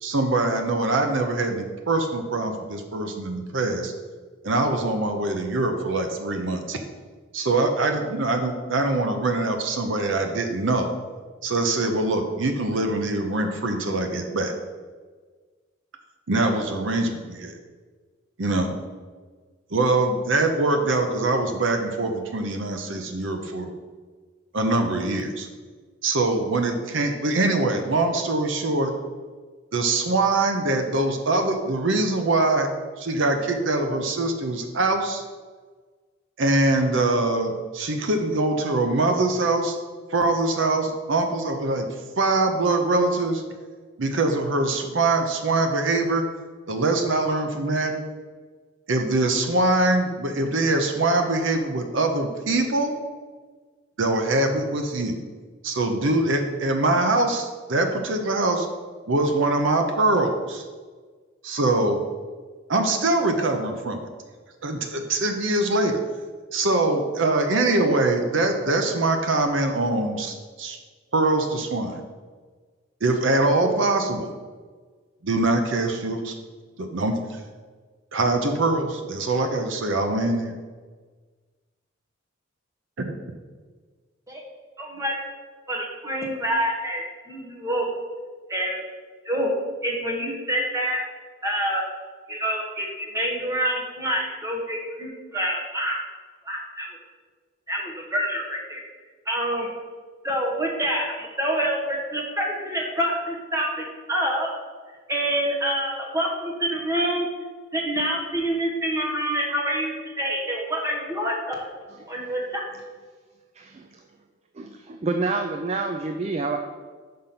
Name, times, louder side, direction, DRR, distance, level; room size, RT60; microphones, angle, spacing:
voice 1, 0.0-3.9 4.4-6.8 7.3-10.9 11.4-14.5 16.3-17.6 18.4-18.8 19.7-23.7 24.5-25.5 26.0-28.9 29.7-32.7 33.0-35.2 36.4-39.8 40.1-41.9 42.2-43.4 44.0-46.2 46.7-47.9 48.9-53.0 54.0-55.2 55.6-58.7 59.1-60.6 61.4-62.0 62.7-64.0 64.6-66.0 66.5-70.8 71.1-72.0 73.0-74.3 75.2-76.3 76.8-77.4 78.1-80.5 83.0-83.2, right 2 dB, 65° right, 5 dB, 0.7 m, -23 dB
voice 2, 84.8-85.2 85.7-87.9 88.5-88.8 89.2-89.5 89.8-91.0 91.4-91.8 92.3-96.0 96.5-96.9 97.7-98.8 99.3-99.7 100.2-104.5 105.1-107.3 107.7-111.7 112.1-112.6, right 1 dB, 15° right, -1 dB, 1.2 m, -27 dB
voice 3, 113.6-113.9 114.6-116.6, right 3 dB, 30° right, 5 dB, 0.3 m, -28 dB
5.6 x 5.1 x 5.8 m, 1.4 s
head